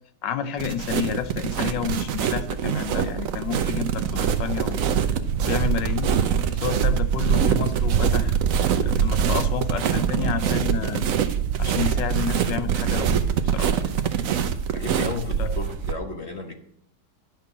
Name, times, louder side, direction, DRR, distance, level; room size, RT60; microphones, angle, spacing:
voice 1, 0.2-4.9 5.4-6.1 6.5-8.4 8.8-11.1 11.6-13.2 13.5-13.7 15.4-15.5, left 9 dB, 90° left, 11 dB, 1.5 m, -30 dB
sound 1, 0.6-15.9, right 8 dB, 60° right, 1.0 m, -24 dB
voice 2, 14.7-16.5, left 3 dB, 45° left, 5 dB, 1.1 m, -33 dB
11.0 x 5.8 x 7.3 m, 0.70 s
omnidirectional pair, 1.9 m